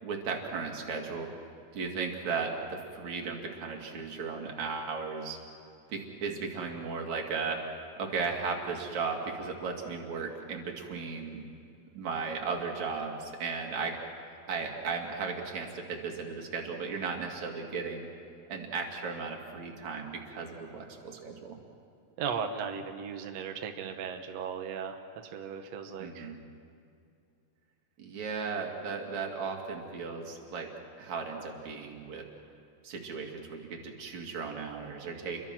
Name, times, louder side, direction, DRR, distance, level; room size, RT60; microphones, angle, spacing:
voice 1, 0.0-1.3 1.7-5.4 5.9-7.6 8.0-11.4 11.9-13.9 14.5-18.1 18.5-21.6 26.0-26.4 28.0-30.7 31.0-32.2 32.8-35.4, right 5 dB, 45° right, 1 dB, 3.2 m, -36 dB
voice 2, 22.2-25.0 25.3-26.3, right 6 dB, 85° right, 5 dB, 1.4 m, -36 dB
29.0 x 23.0 x 6.1 m, 2.5 s
omnidirectional pair, 4.9 m